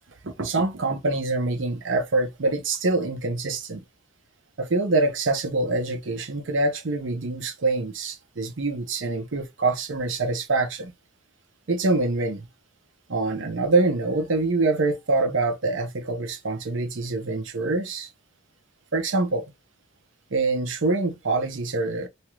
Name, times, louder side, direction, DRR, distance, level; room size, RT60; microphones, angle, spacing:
voice 1, 0.2-3.8 4.6-10.9 11.7-12.5 13.1-18.1 18.9-19.5 20.3-22.1, right 3 dB, 75° right, 0.8 m, -25 dB
3.0 x 2.4 x 3.0 m
head